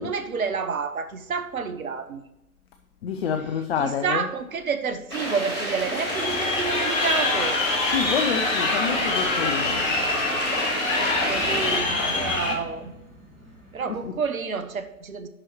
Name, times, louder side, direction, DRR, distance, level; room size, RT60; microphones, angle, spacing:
voice 1, 0.0-2.2 3.8-7.6 10.9-12.9 13.7-15.3, right 5 dB, 70° right, 10 dB, 1.0 m, -29 dB
voice 2, 3.0-4.3 7.8-9.9 13.9-14.2, left 7 dB, 45° left, 6 dB, 0.7 m, -28 dB
sound 1, 5.1-11.8, equal, 85° right, 3.1 m, -30 dB
Crowd, 6.1-12.5, left 3 dB, 60° left, 1.9 m, -25 dB
sound 2, 9.8-14.1, equal, 30° right, 3.2 m, -46 dB
11.0 x 4.6 x 4.5 m, 0.89 s
figure-of-eight pair, 110°, 43 cm